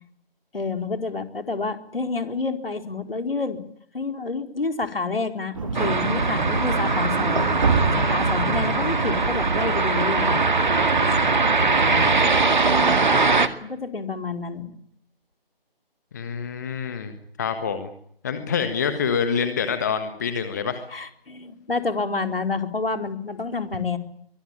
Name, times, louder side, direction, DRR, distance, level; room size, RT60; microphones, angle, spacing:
voice 1, 0.5-3.6 3.9-7.6 8.0-10.4 12.7-13.1 13.6-14.7 20.9-24.0, left 3 dB, 70° left, 6 dB, 4.2 m, -29 dB
sound 1, 5.5-12.5, right 3 dB, 35° right, 3.0 m, -27 dB
sound 2, 5.7-13.5, right 4 dB, 55° right, 2.2 m, -21 dB
voice 2, 11.9-12.2 16.1-17.9 18.2-20.8, left 6 dB, 20° left, 9 dB, 1.5 m, -26 dB
24.0 x 21.0 x 8.8 m, 0.66 s
figure-of-eight pair, 160°, 29 cm